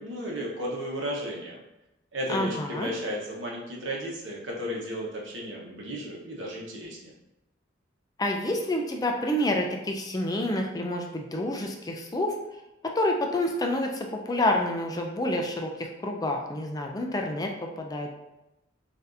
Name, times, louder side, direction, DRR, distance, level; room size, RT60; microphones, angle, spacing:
voice 1, 0.0-1.6 2.1-7.1, equal, 80° right, -3 dB, 1.1 m, -34 dB
voice 2, 2.3-2.9 8.2-12.4 12.8-17.5 17.8-18.1, left 1 dB, 20° left, 2 dB, 0.4 m, -28 dB
6.0 x 2.7 x 2.6 m, 0.93 s
head